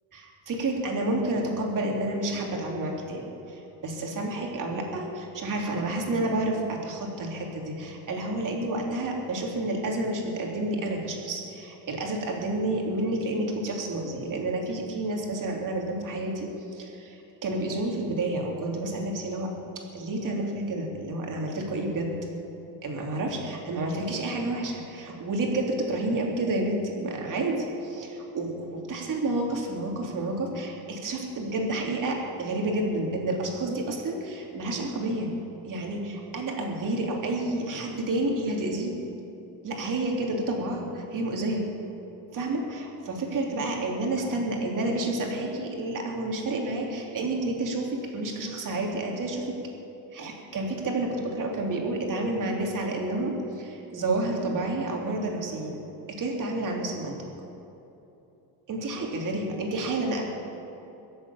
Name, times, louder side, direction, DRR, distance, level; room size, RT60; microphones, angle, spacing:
voice 1, 0.1-19.5 19.9-22.1 22.8-35.3 35.6-39.0 39.6-41.6 42.3-49.5 50.1-55.8 56.2-57.2 58.7-60.3, right 2 dB, 45° right, 0 dB, 3.1 m, -30 dB
22.5 x 7.9 x 7.2 m, 2.9 s
cardioid pair, 120°, 45 cm